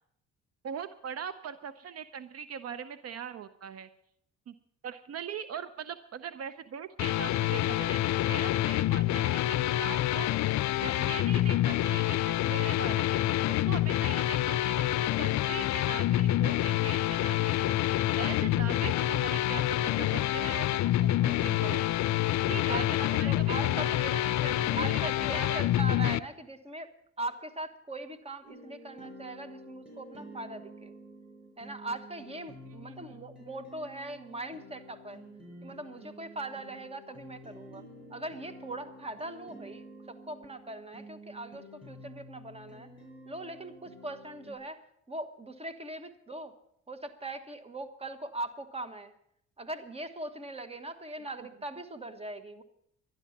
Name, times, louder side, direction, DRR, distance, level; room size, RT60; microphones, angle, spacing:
voice 1, 0.6-3.9 4.5-4.6 4.8-10.3 10.8-17.7 18.2-21.8 22.5-25.0 25.3-25.6 32.7-33.1, right 8 dB, 55° right, 12 dB, 0.7 m, -41 dB
sound 1, 7.0-26.2, left 14 dB, 65° left, 0.5 m, -27 dB
voice 2, 22.7-26.9 27.2-30.9 31.6-35.2 35.6-37.8 38.1-42.9 43.2-44.8 45.1-46.5 46.9-49.1 49.6-52.6, right 2 dB, 20° right, 10 dB, 1.3 m, -40 dB
sound 2, 28.4-44.6, equal, 5° right, 6.4 m, -50 dB
12.0 x 10.5 x 7.2 m, 0.73 s
cardioid pair, 90°, 30 cm